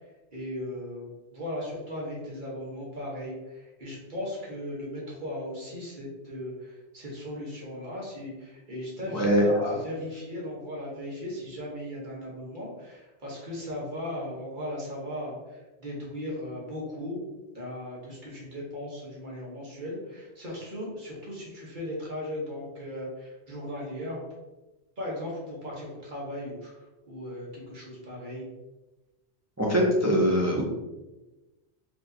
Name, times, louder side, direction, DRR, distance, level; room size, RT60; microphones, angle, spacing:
voice 1, 0.3-17.2 17.5-24.3 25.0-28.5, left 1 dB, 45° right, -4 dB, 1.3 m, -37 dB
voice 2, 9.1-9.4 29.6-30.6, equal, 25° right, -2 dB, 0.4 m, -22 dB
4.5 x 2.9 x 2.7 m, 1.1 s
omnidirectional pair, 1.2 m